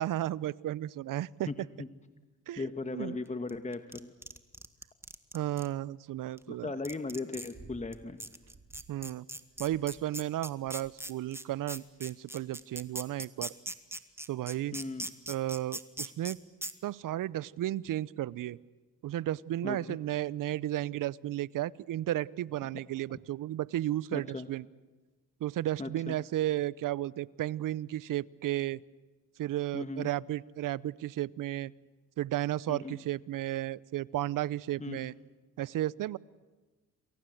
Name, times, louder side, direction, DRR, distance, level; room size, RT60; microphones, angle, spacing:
voice 1, 0.0-1.5 2.5-3.2 5.3-6.7 8.9-9.3 9.6-13.5 14.3-14.8 15.3-16.4 16.8-18.6 19.0-24.7 25.4-28.8 29.4-31.7 32.2-35.1 35.6-36.2, right 14 dB, 65° right, 22 dB, 0.7 m, -33 dB
voice 2, 1.5-1.9 2.6-4.1 6.5-8.2 14.7-15.0 19.6-20.0 24.1-24.5 25.8-26.2 29.7-30.1 32.7-33.0 34.8-35.0, left 3 dB, 20° left, 9 dB, 1.5 m, -37 dB
sound 1, 3.5-5.7 6.4-6.5 6.8-7.5 7.9-8.0 8.2-16.3 16.6-16.7, right 1 dB, 5° right, 1.7 m, -40 dB
vocals panting, 7.5-8.0 8.4-9.0 9.5-10.1 10.6-11.1 11.7-12.1 12.8-13.2 14.1-14.2, right 3 dB, 30° right, 3.8 m, -55 dB
28.5 x 22.5 x 7.9 m, 1.2 s
supercardioid pair, 70°, 35 cm